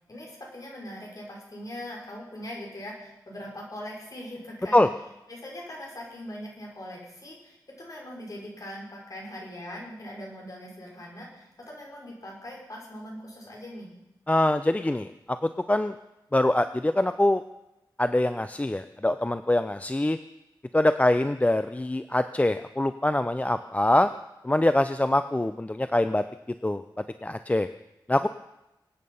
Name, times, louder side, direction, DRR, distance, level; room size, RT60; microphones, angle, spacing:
voice 1, 0.1-4.9 5.3-13.9, left 1 dB, 45° left, -2 dB, 5.5 m, -41 dB
voice 2, 14.3-15.9 16.3-17.4 18.0-20.2 20.7-24.1 24.4-26.2 26.6-26.8 27.2-27.7 28.1-28.3, left 1 dB, 15° left, 10 dB, 0.5 m, -24 dB
25.0 x 8.9 x 5.5 m, 0.94 s
wide cardioid pair, 95°, 8 cm